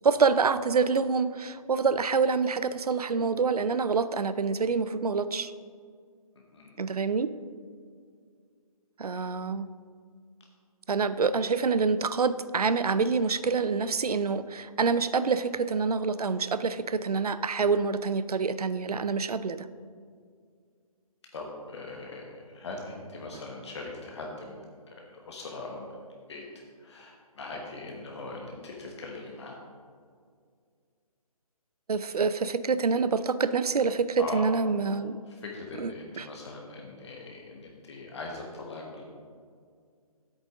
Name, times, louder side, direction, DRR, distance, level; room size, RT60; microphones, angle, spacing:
voice 1, 0.0-5.5 6.8-7.3 9.0-9.7 10.9-19.7 31.9-35.2 35.8-36.3, right 5 dB, 80° right, 14 dB, 0.5 m, -26 dB
voice 2, 21.3-24.6 25.1-26.0 26.3-26.4 26.8-29.6 34.2-34.5 35.3-39.0, left 2 dB, 45° left, 0 dB, 1.3 m, -40 dB
10.5 x 8.1 x 3.7 m, 2.1 s
figure-of-eight pair, 145°, 19 cm